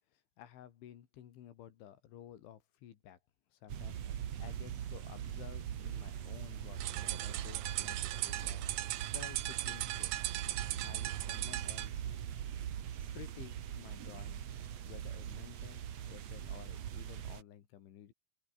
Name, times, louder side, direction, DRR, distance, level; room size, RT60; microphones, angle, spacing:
voice 1, 0.1-3.2 3.5-8.7 9.1-10.1 10.8-12.1 13.1-14.6 14.8-18.1, left 11 dB, 85° left, 4.9 m, -54 dB
sound 1, 3.7-17.4, right 10 dB, 65° right, 1.7 m, -42 dB
sound 2, 6.7-11.9, right 16 dB, 80° right, 3.5 m, -38 dB
open air
omnidirectional pair, 5.3 m